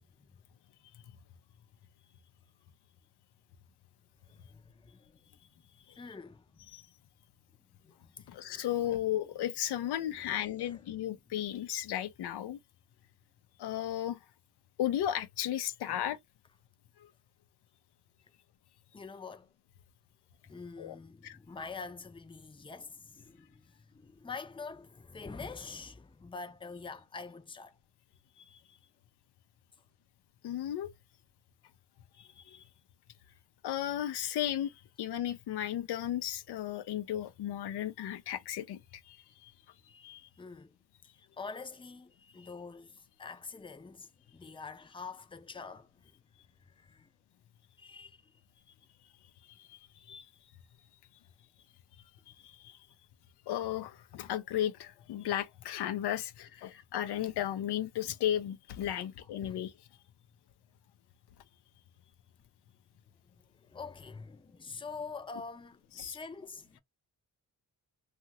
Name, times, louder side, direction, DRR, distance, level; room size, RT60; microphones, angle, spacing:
voice 1, 4.3-5.3 5.9-6.7 7.8-8.9 9.8-11.2 15.9-16.0 18.9-19.5 20.4-27.8 39.9-40.8 41.1-47.1 47.8-48.3 59.5-59.6 63.3-66.8, left 4 dB, 15° left, 0.5 m, -46 dB
voice 2, 8.3-12.6 13.6-14.2 14.8-16.2 20.8-21.0 21.2-21.4 28.4-28.6 30.4-30.9 32.2-32.6 33.6-34.7 35.0-38.8 39.1-39.2 39.4-39.5 40.0-40.2 49.6-49.8 50.1-50.3 52.4-52.8 53.5-59.7 66.0-66.2, left 11 dB, 90° left, 0.6 m, -34 dB
2.7 x 2.4 x 2.9 m
cardioid pair, 75°, 39 cm